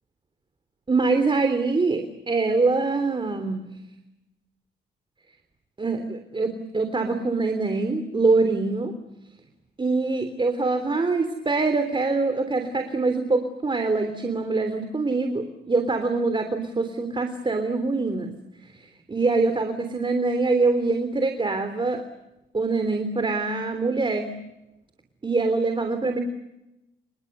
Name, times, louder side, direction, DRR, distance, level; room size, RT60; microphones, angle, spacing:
voice 1, 0.9-3.6 5.8-8.9 9.8-18.3 18.7-22.0 22.5-24.3 25.2-26.2, right 3 dB, 25° right, 7 dB, 3.4 m, -24 dB
29.5 x 27.5 x 6.8 m, 0.93 s
cardioid pair, 90°, 20 cm